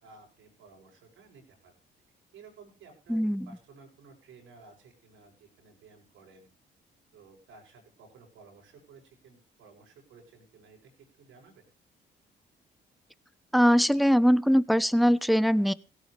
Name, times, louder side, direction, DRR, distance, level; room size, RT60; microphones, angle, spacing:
voice 1, 0.0-1.8 2.3-3.2 3.5-6.5 7.1-10.9 11.2-11.6, right 4 dB, 85° right, 0 dB, 7.5 m, -55 dB
voice 2, 3.1-3.5 13.5-15.7, equal, ahead, 16 dB, 0.9 m, -22 dB
17.0 x 16.5 x 3.4 m, 0.34 s
cardioid pair, 90°, 20 cm